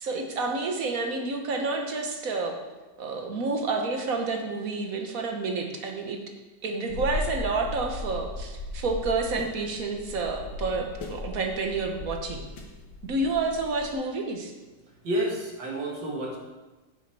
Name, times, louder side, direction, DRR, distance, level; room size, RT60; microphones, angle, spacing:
voice 1, 0.0-2.6 3.0-6.2 6.6-12.5 13.0-14.5, right 3 dB, 55° right, 3 dB, 1.5 m, -29 dB
sound 1, 6.9-13.9, left 2 dB, 75° left, 1.9 m, -37 dB
voice 2, 15.0-16.4, right 1 dB, 80° right, -1 dB, 2.5 m, -29 dB
8.8 x 8.3 x 4.7 m, 1.2 s
omnidirectional pair, 1.9 m